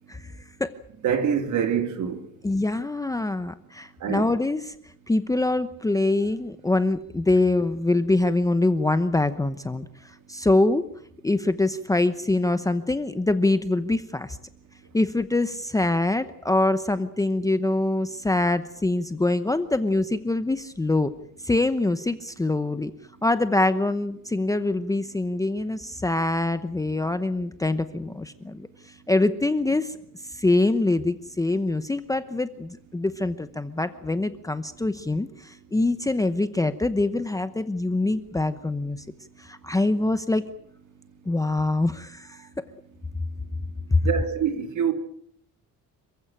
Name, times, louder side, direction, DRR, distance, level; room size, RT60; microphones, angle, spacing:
voice 1, 1.0-2.2 4.0-4.3 44.0-44.9, right 8 dB, 55° right, 3.4 m, -25 dB
voice 2, 2.4-4.7 5.1-10.8 11.2-14.4 14.9-21.1 21.4-22.9 23.2-30.0 30.3-39.0 39.4-40.4 41.2-42.5 43.9-44.0, left 2 dB, 10° left, 0.9 m, -24 dB
27.5 x 15.5 x 9.0 m
cardioid pair, 140°, 35 cm